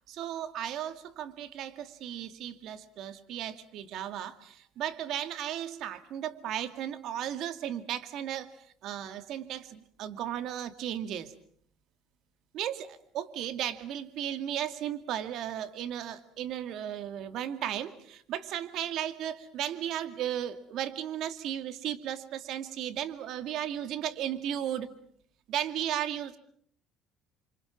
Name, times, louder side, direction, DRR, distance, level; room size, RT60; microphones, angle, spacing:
voice 1, 0.1-8.5 8.8-11.3 12.5-24.9 25.5-26.4, right 10 dB, 65° right, 10 dB, 2.3 m, -35 dB
29.0 x 25.5 x 6.0 m, 0.63 s
supercardioid pair, 95°, 0 cm